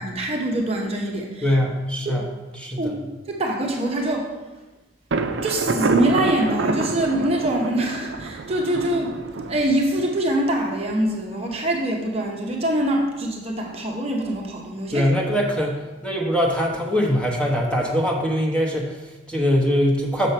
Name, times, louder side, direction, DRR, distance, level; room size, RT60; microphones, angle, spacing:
voice 1, 0.0-1.5 2.1-2.2 2.8-3.0 3.3-4.3 5.4-9.1 9.5-15.0, right 1 dB, 30° right, 0 dB, 0.8 m, -24 dB
voice 2, 1.4-3.0 14.9-20.3, equal, 5° left, -2 dB, 1.0 m, -22 dB
Thunder, 5.1-10.8, right 3 dB, 70° right, 0.5 m, -27 dB
6.6 x 6.3 x 4.4 m, 1.1 s
head